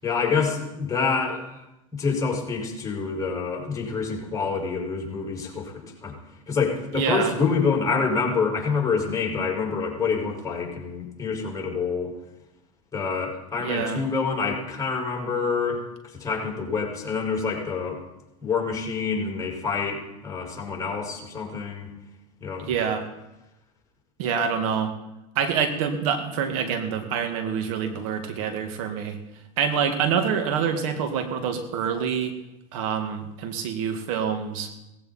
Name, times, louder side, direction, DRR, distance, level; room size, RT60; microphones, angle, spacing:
voice 1, 0.0-1.6 1.9-6.2 6.5-12.1 12.9-18.0 18.4-21.9 22.4-22.7, left 5 dB, 20° left, -2 dB, 5.5 m, -27 dB
voice 2, 6.9-7.3 13.6-14.0 22.6-23.1 24.2-24.9 25.4-29.2 29.6-32.4 32.7-34.7, right 7 dB, 75° right, 6 dB, 2.0 m, -26 dB
18.5 x 15.5 x 4.3 m, 0.93 s
supercardioid pair, 105°, 18 cm